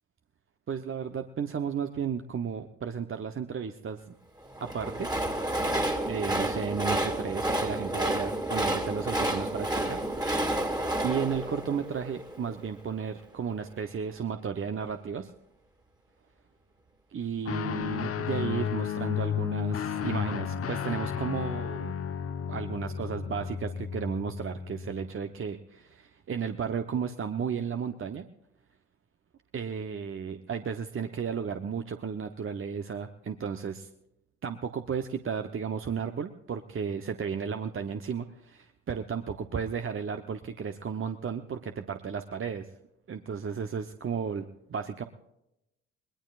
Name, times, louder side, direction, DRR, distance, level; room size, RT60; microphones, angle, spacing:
voice 1, 0.7-4.0 4.6-5.1 6.0-10.7 11.0-15.3 17.1-21.9 22.5-28.2 29.5-33.9 34.4-42.7 43.1-44.4 44.7-45.0, right 6 dB, 35° right, 7 dB, 1.0 m, -34 dB
Train, 4.5-12.6, right 1 dB, 10° right, 2.3 m, -30 dB
Guitar, 17.4-25.1, left 8 dB, 40° left, 1.1 m, -33 dB
21.5 x 20.0 x 2.5 m, 0.86 s
hypercardioid pair, 55°, 37 cm